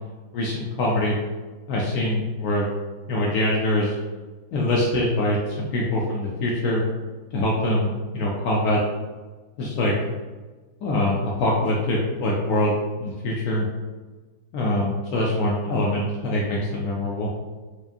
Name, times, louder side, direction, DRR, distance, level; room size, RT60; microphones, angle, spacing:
voice 1, 0.3-1.1 1.7-2.7 3.1-4.0 4.5-6.8 7.3-8.8 9.6-9.9 10.8-12.7 13.0-13.6 14.5-17.3, left 1 dB, 80° left, -4 dB, 0.8 m, -24 dB
4.8 x 2.6 x 2.5 m, 1.3 s
omnidirectional pair, 2.2 m